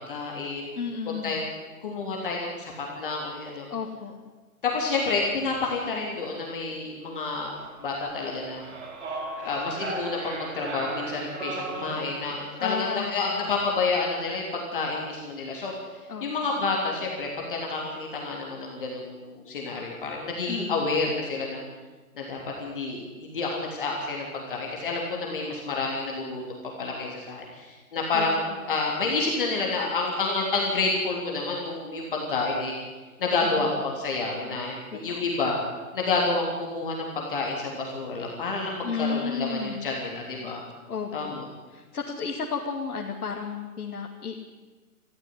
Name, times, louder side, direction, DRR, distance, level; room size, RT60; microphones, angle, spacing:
voice 1, 0.0-0.7 1.2-1.4 1.8-2.7 3.0-3.6 4.6-7.5 7.8-8.6 9.4-15.7 16.2-21.6 22.2-32.7 33.2-35.6 35.9-40.6 41.1-41.4, left 3 dB, 35° left, -1 dB, 3.4 m, -29 dB
voice 2, 0.7-1.4 3.7-4.1 12.6-13.6 16.1-16.2 20.5-20.8 28.1-28.6 33.5-33.8 35.1-35.3 38.8-39.9 40.9-41.4 41.7-44.4, left 5 dB, 90° left, 0 dB, 2.8 m, -33 dB
sound 1, 7.6-12.6, right 2 dB, 50° right, 4.2 m, -37 dB
21.5 x 14.5 x 9.8 m, 1.3 s
hypercardioid pair, 180°, 43 cm